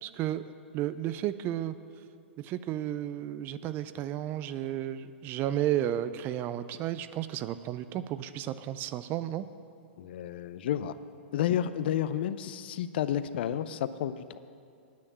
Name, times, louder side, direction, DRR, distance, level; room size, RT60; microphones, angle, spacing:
voice 1, 0.0-1.8 2.4-9.5, right 12 dB, 35° right, 13 dB, 0.4 m, -33 dB
voice 2, 10.0-11.0 11.3-14.4, left 10 dB, 60° left, 13 dB, 0.5 m, -31 dB
9.5 x 6.4 x 8.6 m, 2.5 s
hypercardioid pair, 115°, 6 cm